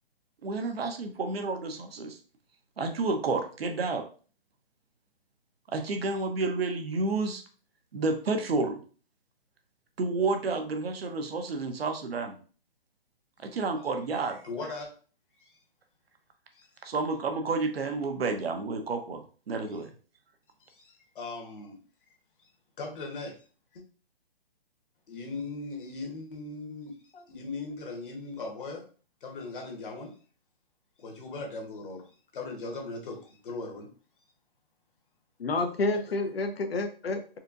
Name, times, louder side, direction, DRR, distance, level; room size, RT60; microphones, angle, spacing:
voice 1, 0.4-2.2 2.8-4.0 5.7-7.4 7.9-8.8 10.0-12.4 13.4-14.4 16.8-19.2 19.5-19.9, right 3 dB, 80° right, 6 dB, 0.9 m, -30 dB
voice 2, 14.4-14.9 15.4-15.5 16.5-16.7 20.6-21.8 22.4-22.5 22.8-23.4 23.7-23.8 25.1-27.0 27.3-28.8 29.2-30.1 31.0-32.1 32.3-33.9, left 3 dB, 60° left, 1 dB, 1.3 m, -39 dB
voice 3, 35.4-37.4, left 3 dB, 90° left, 6 dB, 0.8 m, -29 dB
4.3 x 2.4 x 2.6 m, 0.39 s
hypercardioid pair, 145°, 30 cm